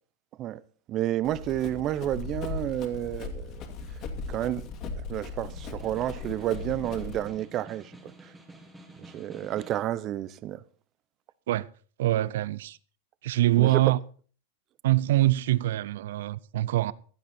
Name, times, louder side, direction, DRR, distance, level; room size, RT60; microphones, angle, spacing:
voice 1, 0.9-3.6 4.3-4.7 5.1-8.1 9.0-10.6 13.6-13.9, right 13 dB, 30° right, 0.6 m, -30 dB
Run, 1.2-7.3, left 4 dB, 35° left, 2.4 m, -38 dB
Snare drum, 5.5-10.0, right 1 dB, 10° right, 1.9 m, -50 dB
voice 2, 12.0-12.8 13.2-14.0 14.8-16.9, right 15 dB, 75° right, 0.5 m, -24 dB
16.0 x 12.0 x 4.3 m
supercardioid pair, 155°, 0 cm